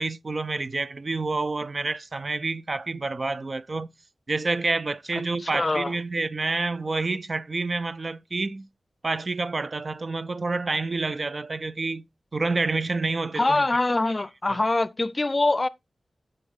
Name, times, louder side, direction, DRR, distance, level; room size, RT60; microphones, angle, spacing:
voice 1, 0.0-3.9 4.3-8.7 9.0-12.0 12.3-13.6 14.5-14.6, right 3 dB, 45° right, 0.4 m, -28 dB
voice 2, 5.4-5.9 13.4-15.7, left 2 dB, 30° left, 0.5 m, -24 dB
9.9 x 6.5 x 3.6 m
wide cardioid pair, 85°, 0 cm